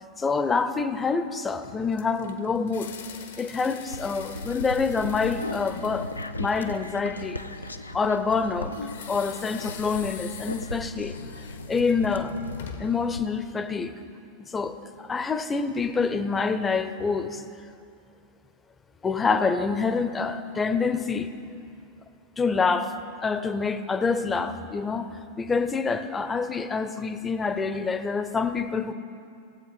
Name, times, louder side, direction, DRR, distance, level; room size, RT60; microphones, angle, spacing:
voice 1, 0.2-2.9 3.4-6.1 6.4-7.4 7.9-8.8 9.1-11.2 11.7-12.4 12.8-13.9 14.5-17.4 19.0-21.3 22.4-23.0 23.2-25.1 25.4-28.9, left 4 dB, 15° left, 11 dB, 0.6 m, -26 dB
sound 1, 1.6-7.0 8.7-13.1, left 7 dB, 60° left, 0.9 m, -44 dB
sound 2, 3.9-13.2, left 2 dB, 80° left, 0.5 m, -37 dB
18.0 x 8.1 x 4.2 m, 2.5 s
figure-of-eight pair, 90°, 0 cm